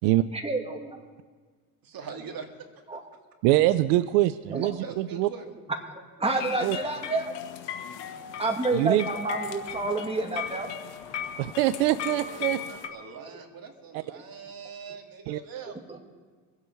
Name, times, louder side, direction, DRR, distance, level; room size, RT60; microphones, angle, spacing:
voice 1, 0.3-1.0 2.9-3.0 4.5-4.8 6.2-7.3 8.4-10.7 15.9-16.0, right 3 dB, 15° right, 2 dB, 2.5 m, -29 dB
voice 2, 1.8-2.5 4.8-5.5 12.2-16.0, right 6 dB, 50° right, 4 dB, 2.4 m, -42 dB
voice 3, 3.4-5.3 6.6-6.8 8.7-9.0 11.4-12.6 13.9-14.0 15.3-15.4, right 16 dB, 80° right, 14 dB, 0.6 m, -24 dB
sound 1, 6.2-12.9, left 8 dB, 75° left, 1.5 m, -37 dB
25.0 x 8.3 x 4.6 m, 1.5 s
supercardioid pair, 70°, 45 cm